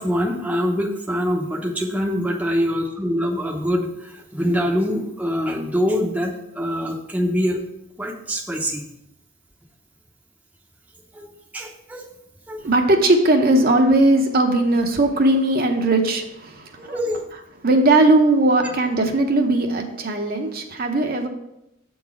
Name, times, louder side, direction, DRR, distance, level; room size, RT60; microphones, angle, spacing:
voice 1, 0.0-7.6 8.0-8.8 11.1-12.1 12.5-12.6 16.8-17.2, equal, 5° right, -1 dB, 0.7 m, -24 dB
voice 2, 12.6-16.7 17.6-21.3, right 2 dB, 45° right, 3 dB, 0.8 m, -18 dB
7.8 x 3.9 x 6.0 m, 0.86 s
head